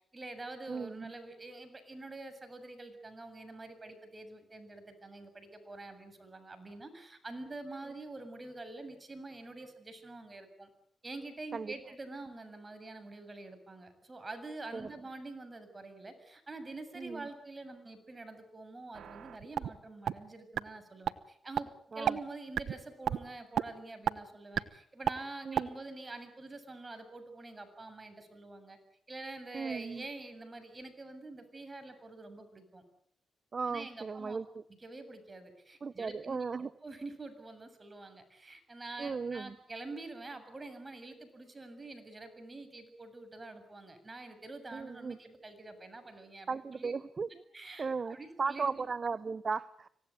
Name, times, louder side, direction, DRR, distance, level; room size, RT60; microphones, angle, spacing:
voice 1, 0.1-10.7 11.0-21.7 21.9-28.8 29.1-32.8 33.7-34.4 34.7-46.9 47.5-48.8, right 2 dB, 30° right, 9 dB, 7.5 m, -46 dB
voice 2, 0.7-1.1 11.5-11.7 14.7-14.9 17.0-17.2 21.9-22.2 25.5-25.7 29.5-30.0 33.5-34.6 35.8-36.7 39.0-39.5 44.7-45.2 46.5-47.3 47.8-49.9, right 5 dB, 45° right, 17 dB, 1.0 m, -36 dB
sound 1, 18.9-19.7 20.1-20.2 20.6-20.7 21.1-21.2 21.6-21.7 22.1-22.2 22.6-22.7 23.1-23.2 23.6-23.7 24.1-24.2 24.6-24.7 25.1-25.2 25.6-25.7, right 9 dB, 75° right, 1.1 m, -30 dB
26.0 x 18.0 x 9.3 m, 0.66 s
cardioid pair, 60°, 0 cm